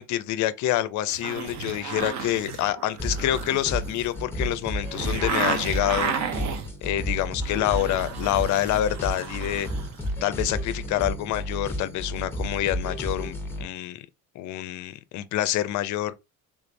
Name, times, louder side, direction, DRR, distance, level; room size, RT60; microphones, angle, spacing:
voice 1, 0.0-6.2 6.8-9.7 10.2-14.0 14.4-16.1, left 13 dB, 55° left, 0.5 m, -27 dB
sound 1, 1.1-6.7 7.2-10.1 10.4-10.5, right 6 dB, 50° right, 0.7 m, -33 dB
sound 2, 3.0-13.7, equal, 5° left, 0.6 m, -32 dB
3.5 x 3.2 x 2.6 m
cardioid pair, 145°, 37 cm